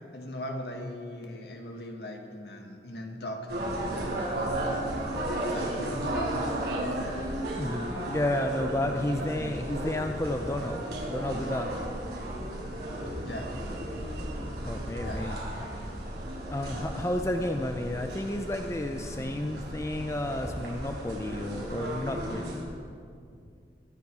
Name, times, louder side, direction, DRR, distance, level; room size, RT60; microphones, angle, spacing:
voice 1, 0.1-4.6 5.5-6.3 13.2-13.5 15.0-15.4, left 1 dB, 70° left, 2 dB, 1.8 m, -40 dB
sound 1, 3.5-22.6, right 1 dB, 70° right, 4.4 m, -34 dB
voice 2, 7.6-11.7 14.7-15.4 16.5-22.6, left 1 dB, 15° left, 5 dB, 0.5 m, -31 dB
22.0 x 10.0 x 4.7 m, 2.3 s
head